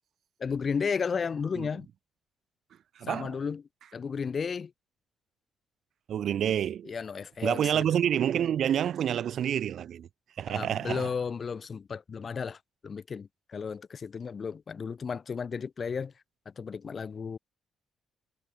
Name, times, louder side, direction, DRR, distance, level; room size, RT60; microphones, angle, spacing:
voice 1, 0.4-1.9 3.1-3.6 3.9-4.7 6.8-7.8 10.5-16.1 16.6-17.4, left 6 dB, 40° left, 6.7 m, -33 dB
voice 2, 3.0-3.3 6.1-6.9 7.4-10.1 10.4-11.1, right 9 dB, 65° right, 3.0 m, -28 dB
cardioid pair, 90°, 0 cm